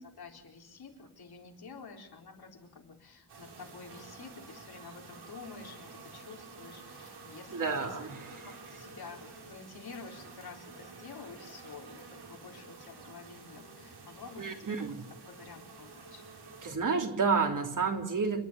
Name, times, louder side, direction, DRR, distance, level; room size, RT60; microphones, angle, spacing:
voice 1, 0.0-8.0 8.3-15.0 15.2-16.2, left 4 dB, 75° left, 1 dB, 4.1 m, -50 dB
sound 1, 3.3-16.7, right 4 dB, 85° right, 5.5 m, -50 dB
voice 2, 7.5-8.4 14.4-15.0 16.6-18.5, right 5 dB, 55° right, 3 dB, 3.3 m, -30 dB
29.0 x 11.5 x 8.2 m, 0.92 s
wide cardioid pair, 150°, 38 cm